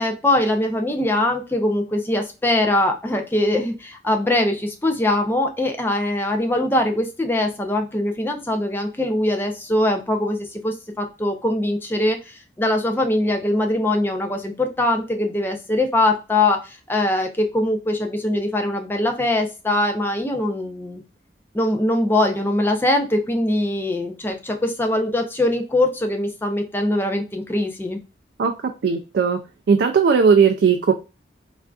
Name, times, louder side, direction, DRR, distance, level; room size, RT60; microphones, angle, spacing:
voice 1, 0.0-21.0 21.5-28.0, left 1 dB, 10° left, 4 dB, 0.4 m, -22 dB
voice 2, 28.8-29.4 29.7-30.9, right 6 dB, 65° right, 5 dB, 0.3 m, -17 dB
3.4 x 2.4 x 2.3 m, 0.30 s
head